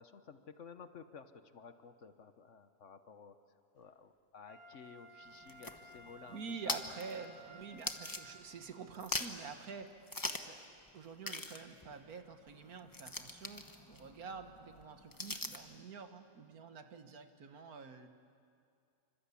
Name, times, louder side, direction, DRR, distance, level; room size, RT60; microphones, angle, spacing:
voice 1, 0.0-6.4 6.7-6.9 7.7-7.8, left 5 dB, 60° left, 10 dB, 1.3 m, -54 dB
Wind instrument woodwind instrument, 4.4-8.7 9.2-9.3, equal, 75° left, 3.9 m, -56 dB
sound 1, 5.2-8.7 8.9-9.5 10.1-10.6 10.9-11.0 11.2-15.7, left 2 dB, 15° left, 1.1 m, -43 dB
voice 2, 6.3-10.7 10.9-18.1, right 5 dB, 85° right, 7 dB, 1.9 m, -48 dB
27.5 x 25.5 x 8.5 m, 2.4 s
omnidirectional pair, 1.5 m